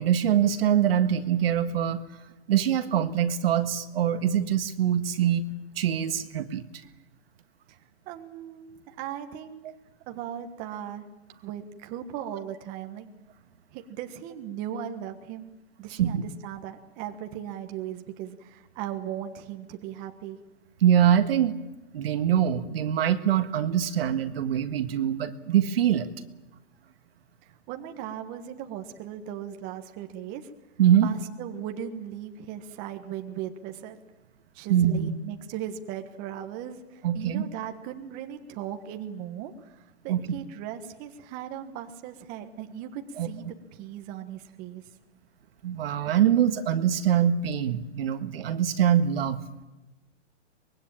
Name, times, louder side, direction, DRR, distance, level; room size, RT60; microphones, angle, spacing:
voice 1, 0.0-2.0 2.5-5.5 5.8-6.6 16.0-16.2 20.8-21.6 21.9-26.1 30.8-31.1 34.7-35.2 37.0-37.4 40.1-40.4 43.2-43.3 45.6-49.4, right 9 dB, 50° right, 9 dB, 1.7 m, -23 dB
voice 2, 8.1-9.6 10.1-11.0 11.4-13.1 13.7-15.5 15.8-20.4 27.4-30.5 31.0-34.0 34.5-44.8, right 10 dB, 25° right, 5 dB, 1.4 m, -38 dB
24.0 x 21.5 x 8.9 m, 1.1 s
hypercardioid pair, 155°, 36 cm